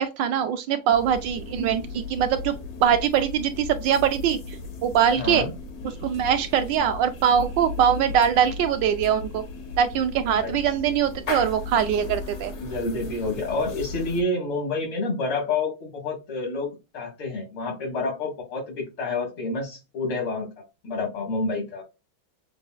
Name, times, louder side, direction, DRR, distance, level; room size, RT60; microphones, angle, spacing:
voice 1, 0.0-2.5 2.8-5.5 5.8-9.4 9.8-12.5, right 9 dB, 75° right, 1.1 m, -22 dB
sound 1, 0.9-14.2, left 4 dB, 55° left, 0.7 m, -36 dB
voice 2, 5.2-5.5 10.4-10.5 12.6-21.8, left 3 dB, 85° left, 2.7 m, -29 dB
6.6 x 2.4 x 2.3 m
omnidirectional pair, 2.2 m